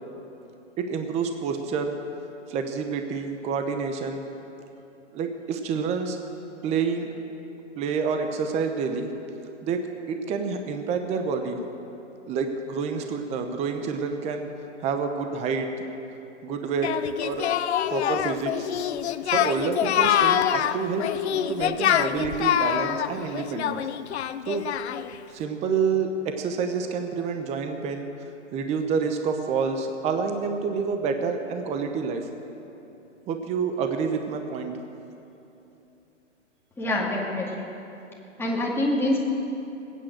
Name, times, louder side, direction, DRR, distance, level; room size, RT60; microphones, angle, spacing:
voice 1, 0.8-2.0 2.5-4.3 5.1-6.2 6.6-7.1 7.8-9.1 9.6-9.8 10.1-11.6 12.3-14.5 14.8-15.7 16.4-16.9 17.2-17.5 17.9-18.7 19.2-21.0 21.3-23.8 24.5-24.6 25.3-32.3 33.3-34.7, right 5 dB, 20° right, 6 dB, 0.9 m, -28 dB
Singing, 16.8-25.2, left 10 dB, 60° left, 0.7 m, -25 dB
voice 2, 36.8-37.7 38.4-39.2, left 1 dB, 5° left, -3 dB, 2.1 m, -25 dB
19.0 x 9.3 x 7.7 m, 2.9 s
hypercardioid pair, 140°, 36 cm